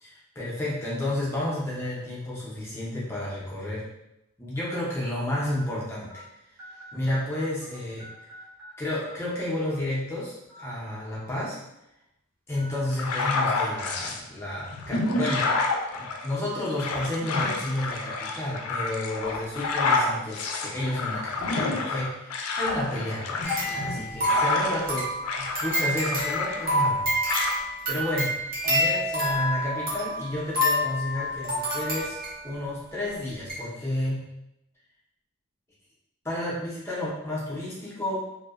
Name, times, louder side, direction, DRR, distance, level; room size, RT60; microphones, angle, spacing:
voice 1, 0.0-3.9 4.4-6.2 6.9-8.1 8.8-11.6 12.5-15.5 15.9-25.1 25.4-27.6 27.9-32.2 32.4-34.3 36.2-38.3, left 1 dB, 10° left, -6 dB, 0.4 m, -31 dB
sound 1, 2.6-2.8 3.5-3.6 4.7-4.8 5.5-5.6 6.1-6.2 6.6-7.7 8.0-8.7 9.0-9.1 10.4-10.7 11.1-11.2 12.6-12.8 13.2-13.4 13.8-14.0 14.6-14.7, equal, 85° right, 0.8 m, -46 dB
sound 2, 12.9-14.2 14.7-24.9 25.2-27.0 27.3-27.5, left 3 dB, 90° left, 0.3 m, -29 dB
sound 3, 23.4-32.6 33.1-33.2 33.5-33.6, equal, 40° right, 0.7 m, -28 dB
2.6 x 2.0 x 2.3 m, 0.86 s
head